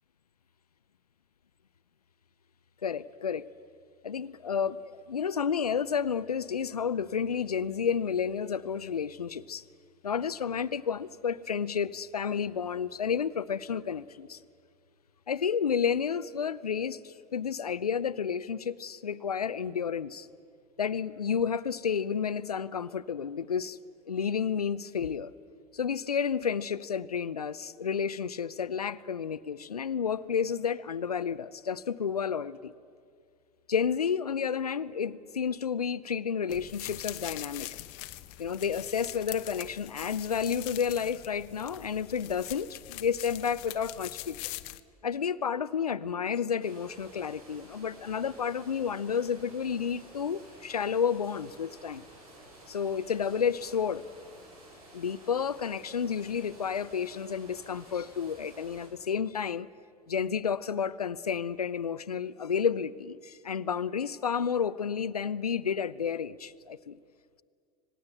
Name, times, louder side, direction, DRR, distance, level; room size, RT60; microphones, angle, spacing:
voice 1, 2.8-3.5 4.0-9.6 10.0-14.4 15.3-20.3 20.8-23.8 24.1-25.3 25.7-32.7 33.7-37.7 38.4-44.4 45.0-52.0 52.7-54.0 54.9-59.7 60.1-67.0, left 7 dB, 90° left, 15 dB, 0.6 m, -31 dB
sound 1, 36.5-44.8, left 18 dB, 55° left, 1.0 m, -43 dB
sound 2, 46.6-58.9, right 1 dB, 75° right, 7.5 m, -52 dB
26.5 x 19.0 x 8.1 m, 2.1 s
figure-of-eight pair, 80°, 19 cm